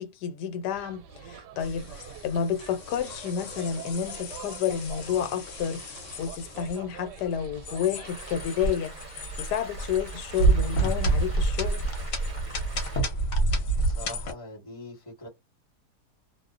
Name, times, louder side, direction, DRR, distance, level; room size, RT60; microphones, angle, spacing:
voice 1, 0.0-11.9, left 8 dB, 90° left, 1.2 m, -30 dB
sound 1, 0.7-8.7, right 9 dB, 85° right, 1.2 m, -46 dB
sound 2, 1.6-14.3, right 2 dB, 55° left, 1.0 m, -29 dB
sound 3, 8.0-13.0, right 3 dB, 40° right, 0.6 m, -45 dB
voice 2, 13.7-15.3, left 2 dB, 20° left, 1.2 m, -42 dB
2.6 x 2.0 x 2.4 m
omnidirectional pair, 1.7 m